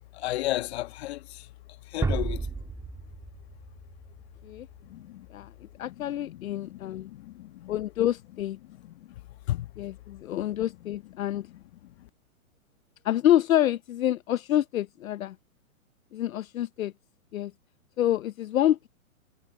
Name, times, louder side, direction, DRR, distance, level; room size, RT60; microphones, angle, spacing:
voice 1, 0.1-1.5 1.9-2.5 4.9-5.3 5.9-7.7 8.8-8.9 9.5-9.7, left 16 dB, 50° left, 1.4 m, -34 dB
sound 1, 2.0-4.9, right 4 dB, 10° right, 2.4 m, -32 dB
voice 2, 5.8-7.1 7.7-8.6 9.8-11.5 13.0-15.4 16.1-16.9 17.3-17.5 18.0-18.9, left 12 dB, 70° left, 0.8 m, -27 dB
hypercardioid pair, 140°, 42 cm